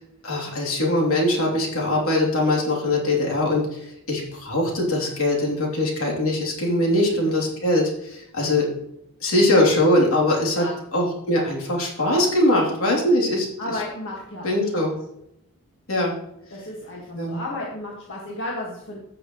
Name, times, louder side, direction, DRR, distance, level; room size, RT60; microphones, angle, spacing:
voice 1, 0.2-8.7 9.2-10.7 10.9-13.5 14.4-14.9 15.9-16.1 17.1-17.4, left 1 dB, 80° left, -2 dB, 3.2 m, -21 dB
voice 2, 6.9-7.3 10.6-10.7 13.6-14.9 16.5-19.0, left 1 dB, 60° left, -3 dB, 1.9 m, -34 dB
15.5 x 6.8 x 3.1 m, 0.79 s
head